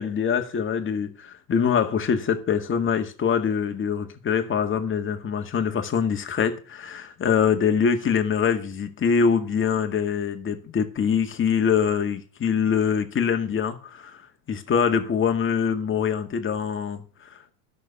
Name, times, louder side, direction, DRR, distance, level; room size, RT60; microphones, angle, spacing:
voice 1, 0.0-14.2 14.5-17.5, left 7 dB, 25° left, 2.0 m, -24 dB
11.5 x 6.7 x 6.8 m
hypercardioid pair, 105°, 47 cm